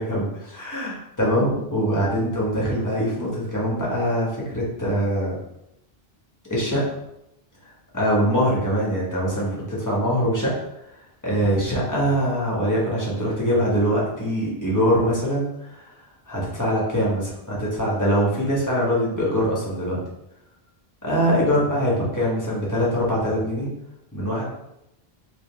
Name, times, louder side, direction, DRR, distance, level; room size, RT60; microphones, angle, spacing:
voice 1, 0.0-5.4 6.5-6.8 7.9-10.5 11.2-15.9 16.3-20.0 21.0-23.7 24.1-24.4, equal, 20° left, -6 dB, 1.1 m, -23 dB
3.8 x 2.9 x 3.3 m, 0.85 s
omnidirectional pair, 1.0 m